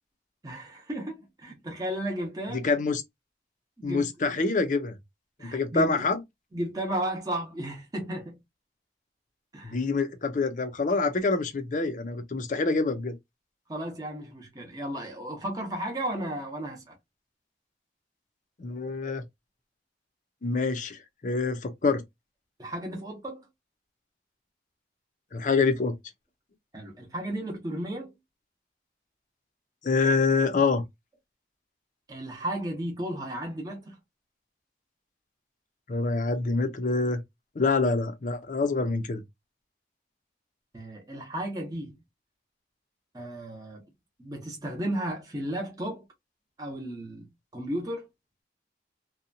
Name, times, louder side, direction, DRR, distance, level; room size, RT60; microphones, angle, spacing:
voice 1, 0.4-2.6 3.8-4.1 5.4-6.0 6.5-8.4 9.5-9.8 13.7-17.0 22.6-23.4 26.7-28.1 32.1-34.0 40.7-42.0 43.1-43.8 44.2-46.0 46.6-48.1, right 1 dB, 20° right, 0.7 m, -34 dB
voice 2, 2.5-3.0 3.8-4.9 5.4-6.2 9.6-13.1 18.6-19.2 20.4-22.0 25.3-25.9 29.8-30.8 35.9-37.2 37.6-39.2, left 4 dB, 45° left, 0.5 m, -26 dB
2.7 x 2.1 x 2.5 m
head